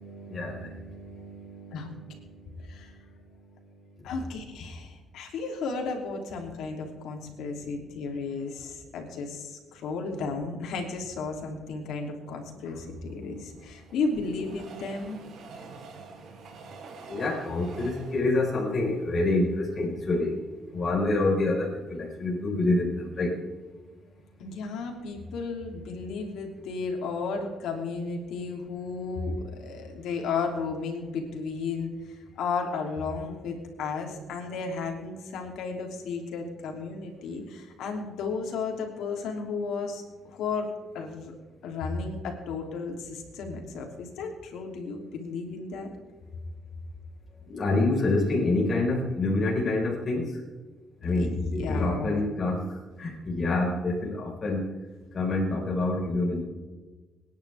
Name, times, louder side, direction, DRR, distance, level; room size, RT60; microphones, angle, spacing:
voice 1, 0.0-4.3 7.7-8.1 12.5-12.6 13.2-13.9 15.6-16.7 17.1-23.4 47.4-50.4 51.0-56.4, left 2 dB, 35° left, -4 dB, 4.9 m, -28 dB
voice 2, 4.0-15.2 24.4-31.9 32.3-40.0 40.3-41.3 41.6-45.9 51.1-52.2, left 4 dB, 80° left, 2 dB, 3.1 m, -33 dB
Train, 12.8-20.1 20.6-20.7 20.9-21.0, right 4 dB, 65° right, 3.1 m, -48 dB
27.0 x 10.5 x 3.6 m, 1.3 s
cardioid pair, 100°, 0 cm